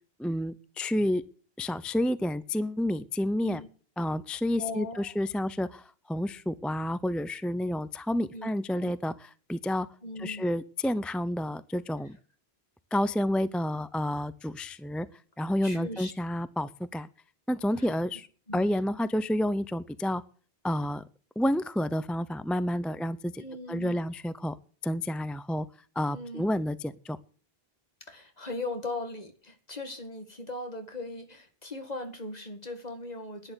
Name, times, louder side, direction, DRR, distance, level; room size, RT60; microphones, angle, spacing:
voice 1, 0.2-1.2 1.6-3.6 4.0-9.9 10.2-12.2 12.9-15.1 15.4-17.1 17.5-18.3 18.5-20.2 20.6-21.0 21.4-23.4 23.7-24.6 24.8-25.7 26.0-27.2, left 1 dB, ahead, 15 dB, 0.4 m, -30 dB
voice 2, 4.6-5.1 8.3-8.9 10.0-10.5 15.6-16.1 17.7-17.9 18.5-18.7 23.4-24.0 26.1-26.5 28.0-33.5, left 2 dB, 40° left, 6 dB, 2.1 m, -39 dB
11.0 x 10.5 x 8.0 m, 0.42 s
omnidirectional pair, 1.0 m